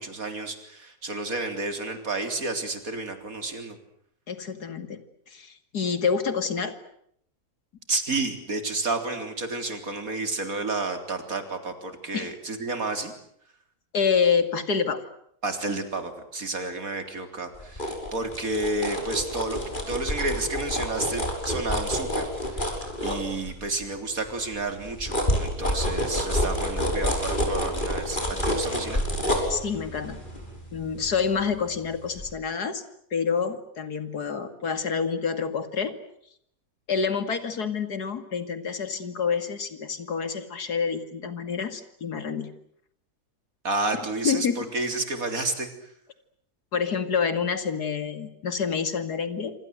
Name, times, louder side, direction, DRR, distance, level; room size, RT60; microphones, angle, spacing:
voice 1, 0.0-3.8 7.9-13.1 15.4-19.6 19.9-22.7 23.0-29.0 43.6-45.7, right 2 dB, 60° right, 7 dB, 4.1 m, -30 dB
voice 2, 4.3-5.0 5.3-6.8 12.1-12.3 13.9-15.0 29.5-30.2 30.7-32.8 33.1-36.0 36.9-42.5 44.2-44.7 46.7-49.5, left 6 dB, 85° left, 10 dB, 2.9 m, -27 dB
sound 1, 17.5-23.8 24.2-31.8 32.2-32.3, equal, 30° left, 6.6 m, -29 dB
27.0 x 26.5 x 7.9 m, 0.69 s
omnidirectional pair, 1.7 m